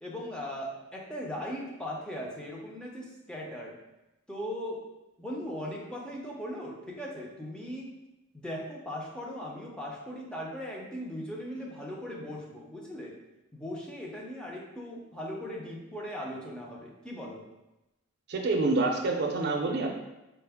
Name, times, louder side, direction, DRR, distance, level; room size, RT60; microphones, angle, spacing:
voice 1, 0.0-3.8 4.3-4.8 5.2-7.9 8.3-13.1 13.5-17.5, equal, 5° left, -3 dB, 0.5 m, -38 dB
voice 2, 18.3-19.9, right 3 dB, 50° right, 1 dB, 0.5 m, -27 dB
4.3 x 2.0 x 3.4 m, 0.98 s
head